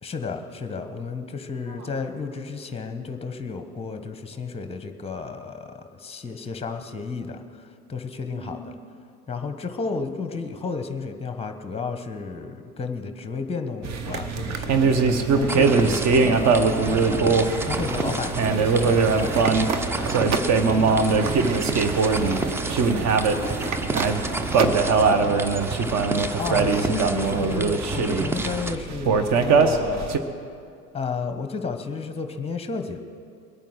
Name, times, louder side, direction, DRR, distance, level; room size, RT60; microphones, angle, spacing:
voice 1, 0.0-8.7 9.3-16.6 17.1-19.4 26.1-30.2 30.9-33.0, left 4 dB, 15° left, 7 dB, 1.2 m, -32 dB
voice 2, 1.6-2.0 8.3-8.6 20.3-25.7, equal, 60° right, -2 dB, 4.9 m, -40 dB
sound 1, 13.8-30.2, right 4 dB, 40° right, 1.2 m, -22 dB
sound 2, 15.5-28.8, right 2 dB, 5° right, 0.3 m, -30 dB
21.5 x 9.1 x 6.4 m, 2.3 s
figure-of-eight pair, 70°, 44 cm